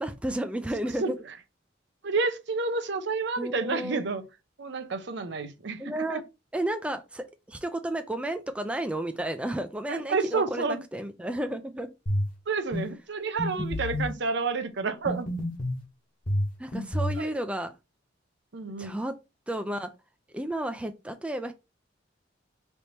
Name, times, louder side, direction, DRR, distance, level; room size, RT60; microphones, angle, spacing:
voice 1, 0.0-1.1 3.4-4.0 5.8-6.2 6.5-11.9 16.6-17.7 18.8-19.1 19.5-19.9 20.3-21.5, right 1 dB, 5° right, 0.3 m, -32 dB
voice 2, 1.0-1.4 2.0-4.2 4.6-6.2 9.9-10.8 12.5-15.3 17.2-17.3 18.5-19.0, right 4 dB, 65° right, 0.7 m, -30 dB
sound 1, 12.1-12.3 12.7-12.9 13.4-14.1 15.1-15.8 16.3-17.2, left 1 dB, 50° left, 1.3 m, -29 dB
3.4 x 2.8 x 4.3 m
head